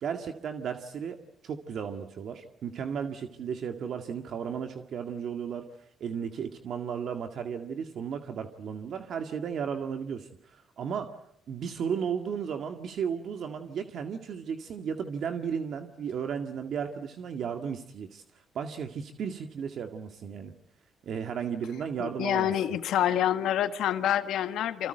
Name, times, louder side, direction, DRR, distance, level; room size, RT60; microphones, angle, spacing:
voice 1, 0.0-1.2 1.4-5.6 6.0-11.2 11.5-18.2 18.5-20.5 21.0-22.5, right 7 dB, 65° right, 6 dB, 2.0 m, -34 dB
voice 2, 22.0-24.9, left 11 dB, 80° left, 10 dB, 1.7 m, -27 dB
28.0 x 25.5 x 8.0 m, 0.73 s
cardioid pair, 90°, 0 cm